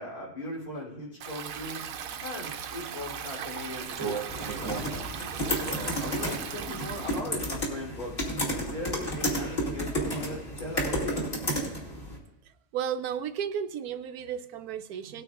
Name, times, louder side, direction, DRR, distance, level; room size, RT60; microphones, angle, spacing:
voice 1, 0.0-1.8 2.2-5.1 5.7-8.2 8.5-11.3, left 1 dB, 90° left, -5 dB, 4.1 m, -39 dB
Stream, 1.2-7.2, right 8 dB, 70° right, 1.0 m, -38 dB
sound 1, 3.9-7.8 8.3-9.2 9.6-10.6, right 5 dB, 20° right, 0.9 m, -39 dB
sound 2, 4.3-12.2, equal, 35° left, 2.5 m, -32 dB
voice 2, 12.7-15.2, right 8 dB, 90° right, 11 dB, 1.1 m, -33 dB
18.0 x 9.1 x 2.5 m, 0.87 s
omnidirectional pair, 1.5 m